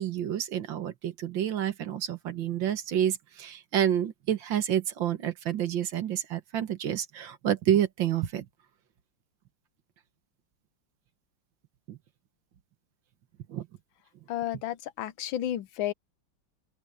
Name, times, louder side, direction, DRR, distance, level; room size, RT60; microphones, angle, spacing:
voice 1, 0.0-8.5 11.9-12.0 13.5-13.7, right 10 dB, 75° right, 1.9 m, -29 dB
voice 2, 14.3-15.9, left 12 dB, 90° left, 1.6 m, -32 dB
open air
omnidirectional pair, 2.1 m